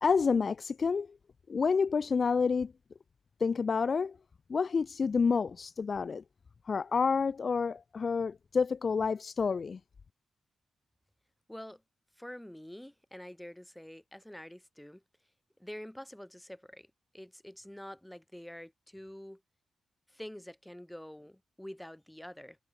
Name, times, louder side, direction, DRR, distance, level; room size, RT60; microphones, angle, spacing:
voice 1, 0.0-1.2 1.5-2.7 3.4-4.2 4.5-6.2 6.6-9.8, left 5 dB, 55° left, 1.3 m, -29 dB
voice 2, 11.5-11.8 12.2-15.0 15.6-16.9 17.1-19.4 20.1-22.6, equal, 5° left, 7.3 m, -47 dB
supercardioid pair, 50°, 0 cm